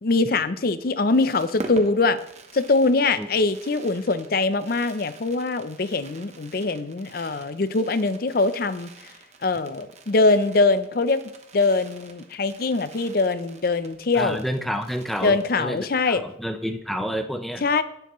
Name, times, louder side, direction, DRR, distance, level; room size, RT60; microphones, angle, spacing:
voice 1, 0.0-2.2 2.5-8.9 9.4-11.2 11.5-14.4 15.2-16.2 17.6-17.8, left 3 dB, 55° left, 13 dB, 0.6 m, -22 dB
Fireworks, 0.8-15.9 16.2-16.3 16.5-16.8, right 3 dB, 40° right, 1.0 m, -45 dB
voice 2, 14.2-17.6, equal, ahead, 6 dB, 0.6 m, -29 dB
17.5 x 6.9 x 3.1 m, 0.77 s
head